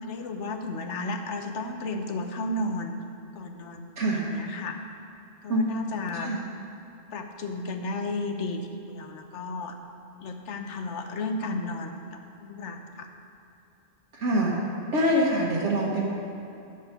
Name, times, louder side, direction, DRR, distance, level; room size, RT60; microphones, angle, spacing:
voice 1, 0.0-2.9 3.3-4.7 5.4-6.3 7.1-9.8 10.2-13.1, left 2 dB, 70° left, 5 dB, 1.1 m, -33 dB
voice 2, 4.0-4.3 5.5-5.8 6.1-6.4 14.1-14.5 14.9-16.1, right 1 dB, 65° right, -4 dB, 1.5 m, -25 dB
9.6 x 7.7 x 5.7 m, 2.8 s
omnidirectional pair, 1.3 m